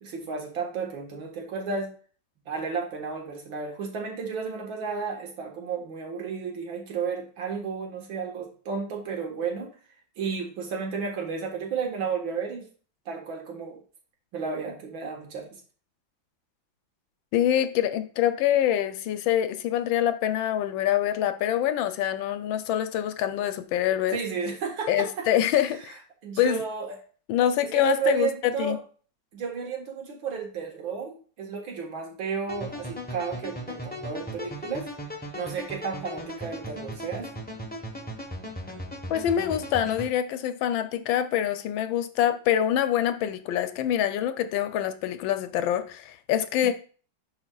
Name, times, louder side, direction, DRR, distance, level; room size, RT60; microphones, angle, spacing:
voice 1, 0.0-1.9 2.5-9.7 10.2-12.7 13.1-13.8 14.3-15.5 24.1-25.1 25.5-26.0 26.2-27.0 27.6-28.8 29.3-34.9 35.3-37.3, right 5 dB, 75° right, 2 dB, 2.2 m, -32 dB
voice 2, 17.3-24.2 24.9-25.8 26.4-26.6 27.3-28.3 28.6-28.8 39.1-46.7, left 11 dB, 75° left, 10 dB, 1.3 m, -25 dB
sound 1, 32.5-40.1, equal, 10° left, 0.6 m, -37 dB
10.5 x 4.3 x 2.3 m, 0.40 s
omnidirectional pair, 2.2 m